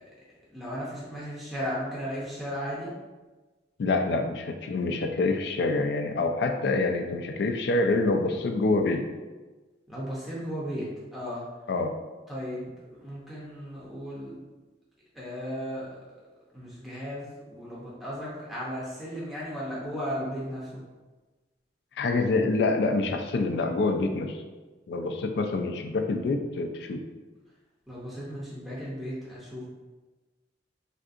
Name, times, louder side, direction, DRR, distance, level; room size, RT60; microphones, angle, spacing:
voice 1, 0.5-2.9 9.9-10.9 11.1-11.5 12.3-14.4 15.1-16.0 16.5-20.8 27.9-29.6, equal, ahead, -8 dB, 0.6 m, -35 dB
voice 2, 3.8-9.0 11.7-11.9 22.0-24.4 24.9-27.0, left 3 dB, 60° left, 5 dB, 0.3 m, -26 dB
3.5 x 2.6 x 2.4 m, 1.2 s
head